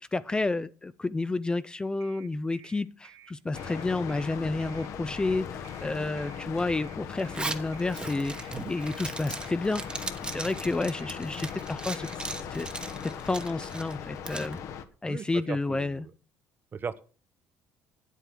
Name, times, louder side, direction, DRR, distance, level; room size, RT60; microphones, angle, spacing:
voice 1, 0.0-12.1 12.5-12.7 13.3-14.6 15.0-16.1, left 3 dB, 15° left, 14 dB, 0.5 m, -30 dB
sound 1, 2.0-12.2, right 12 dB, 55° right, 2.5 m, -53 dB
sound 2, 3.5-14.8, left 7 dB, 60° left, 1.2 m, -39 dB
Zipper (clothing), 7.2-14.5, right 3 dB, 15° right, 1.1 m, -38 dB
voice 2, 15.1-16.1 16.7-17.0, right 6 dB, 35° right, 14 dB, 0.8 m, -38 dB
8.7 x 8.2 x 6.1 m, 0.39 s
supercardioid pair, 100°, 6 cm